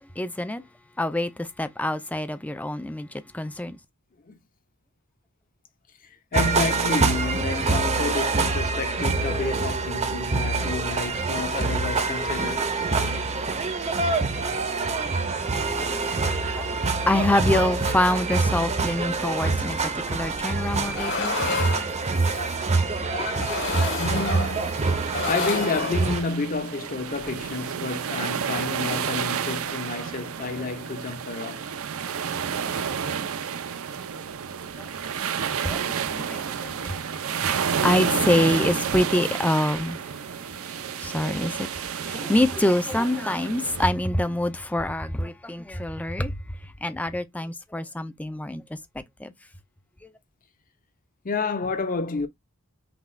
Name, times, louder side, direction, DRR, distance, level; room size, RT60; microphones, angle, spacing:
voice 1, 0.2-0.6 1.0-3.8 15.7-16.7 17.1-21.4 34.8-49.3 50.0-50.1, left 1 dB, 5° left, 0.4 m, -26 dB
voice 2, 6.3-12.7 23.0-23.5 24.0-25.0 25.3-31.7 51.2-52.3, left 4 dB, 40° left, 0.7 m, -30 dB
sound 1, 6.3-26.2, right 3 dB, 30° right, 0.7 m, -26 dB
sound 2, 20.7-22.6 23.1-24.8 25.1-26.0, left 3 dB, 60° left, 1.4 m, -30 dB
sound 3, 24.1-43.9, right 7 dB, 70° right, 0.5 m, -30 dB
5.9 x 2.3 x 3.1 m
head